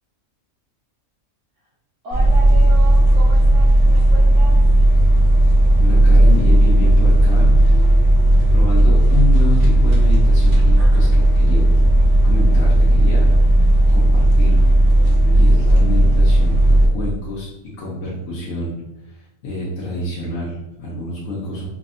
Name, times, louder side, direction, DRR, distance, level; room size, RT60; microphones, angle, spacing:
voice 1, 2.0-4.6, right 1 dB, 70° right, -7 dB, 1.1 m, -34 dB
sound 1, 2.1-16.9, right 1 dB, 55° right, 0.8 m, -13 dB
voice 2, 5.8-7.9 8.5-11.7 12.2-13.3 13.9-14.6 14.9-15.0 15.3-17.5 17.8-18.8 19.0-21.7, left 2 dB, 70° left, -7 dB, 1.0 m, -27 dB
3.5 x 2.0 x 2.4 m, 0.99 s
omnidirectional pair, 1.4 m